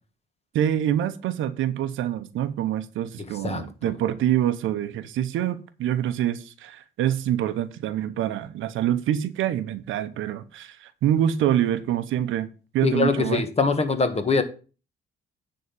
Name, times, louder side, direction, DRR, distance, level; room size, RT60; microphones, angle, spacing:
voice 1, 0.5-12.5 12.7-13.4, right 11 dB, 85° right, 0.8 m, -26 dB
voice 2, 3.4-3.9 12.8-14.4, left 4 dB, 30° left, 1.5 m, -23 dB
9.6 x 3.9 x 7.0 m
cardioid pair, 90°, 20 cm